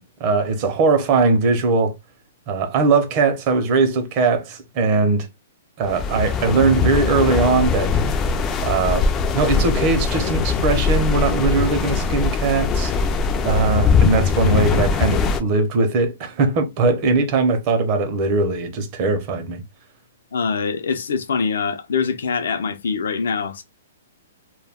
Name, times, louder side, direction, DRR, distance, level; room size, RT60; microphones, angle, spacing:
voice 1, 0.2-1.9 2.5-5.3 5.8-7.9 8.6-9.1 9.3-12.9 13.4-19.6, right 3 dB, 35° right, 0.7 m, -20 dB
sound 1, 5.8-15.4, left 5 dB, 20° left, 0.3 m, -21 dB
voice 2, 20.3-23.6, left 5 dB, 75° left, 0.5 m, -24 dB
2.2 x 2.2 x 3.4 m
hypercardioid pair, 155°, 0 cm